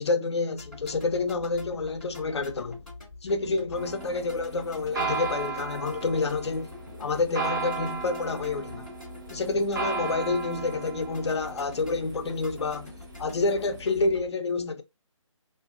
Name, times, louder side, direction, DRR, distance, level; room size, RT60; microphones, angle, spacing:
voice 1, 0.0-2.8 3.2-6.7 7.0-8.9 9.3-12.9 13.2-14.8, left 3 dB, 55° left, 0.5 m, -28 dB
sound 1, 0.6-14.3, left 3 dB, ahead, 0.6 m, -45 dB
sound 2, 3.8-13.9, right 5 dB, 40° right, 0.9 m, -36 dB
2.5 x 2.4 x 2.4 m
figure-of-eight pair, 155°, 17 cm